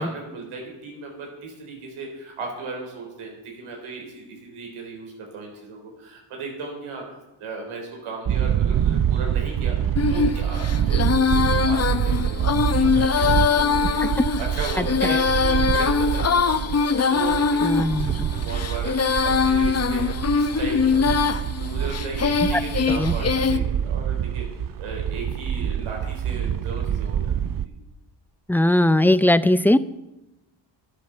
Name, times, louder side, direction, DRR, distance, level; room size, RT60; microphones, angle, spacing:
voice 1, 0.0-7.0 7.4-24.5 24.8-27.7, right 3 dB, 85° right, 0 dB, 4.1 m, -36 dB
sound 1, 8.2-27.7, right 9 dB, 45° right, 0.6 m, -26 dB
Female singing, 10.0-23.6, left 5 dB, 30° left, 0.8 m, -22 dB
voice 2, 17.6-18.1 22.5-22.6 23.0-23.1 28.5-29.8, left 1 dB, 5° left, 16 dB, 0.4 m, -19 dB
10.5 x 10.0 x 6.9 m, 0.94 s
cardioid pair, 80°, 48 cm